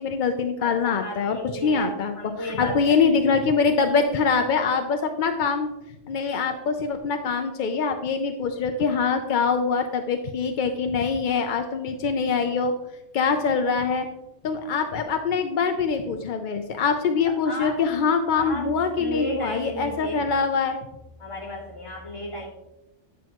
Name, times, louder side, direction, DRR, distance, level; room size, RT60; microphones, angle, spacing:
voice 1, 0.0-2.1 2.4-5.7 6.1-12.7 13.1-14.1 14.4-20.8, left 5 dB, 60° left, 6 dB, 0.5 m, -24 dB
voice 2, 0.6-3.2 17.2-18.0 18.3-20.3 21.2-22.5, left 1 dB, 25° left, -6 dB, 2.5 m, -34 dB
9.2 x 6.1 x 2.9 m, 0.95 s
omnidirectional pair, 1.4 m